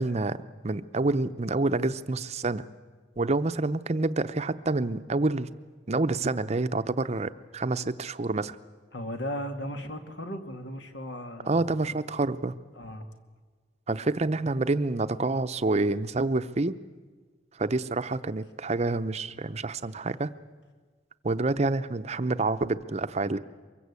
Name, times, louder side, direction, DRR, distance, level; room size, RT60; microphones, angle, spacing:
voice 1, 0.0-2.6 3.2-5.5 5.9-8.6 11.5-12.6 13.9-16.8 17.6-20.3 21.2-23.4, right 2 dB, 35° right, 12 dB, 0.7 m, -28 dB
voice 2, 8.9-12.0 12.7-13.1, equal, 70° left, 6 dB, 2.2 m, -37 dB
24.0 x 22.0 x 8.3 m, 1.5 s
head